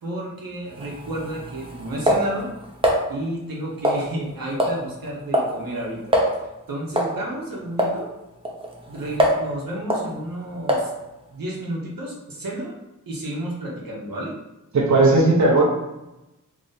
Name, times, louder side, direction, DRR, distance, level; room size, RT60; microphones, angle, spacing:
voice 1, 0.0-2.5 3.1-6.2 6.7-8.1 8.9-10.9 11.3-12.8 13.1-14.3, right 1 dB, 85° right, -3 dB, 1.0 m, -31 dB
sound 1, 0.7-3.0 3.8-4.3 4.6-4.8 5.1-5.6 5.8-5.9 6.1-6.4 7.0-7.2 7.8-8.0 8.5-9.5 9.9-10.1 10.7-11.0, right 1 dB, 15° right, 0.6 m, -22 dB
voice 2, 14.7-15.6, right 2 dB, 55° right, -3 dB, 0.8 m, -16 dB
3.0 x 2.6 x 3.9 m, 0.95 s
wide cardioid pair, 75°, 33 cm